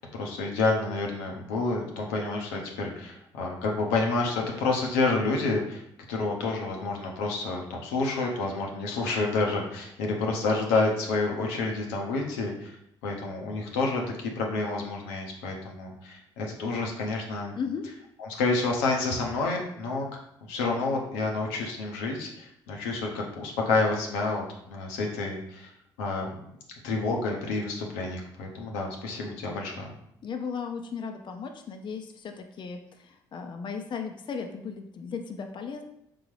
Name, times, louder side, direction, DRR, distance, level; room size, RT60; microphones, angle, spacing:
voice 1, 0.1-5.8 6.1-12.8 13.0-17.5 18.3-20.1 20.5-24.4 24.7-25.7 26.0-26.3 26.8-30.0, left 3 dB, 90° left, 0 dB, 0.7 m, -29 dB
voice 2, 17.6-17.9 30.2-35.8, left 6 dB, 45° left, 5 dB, 0.5 m, -36 dB
3.8 x 3.8 x 3.2 m, 0.75 s
hypercardioid pair, 55°, 11 cm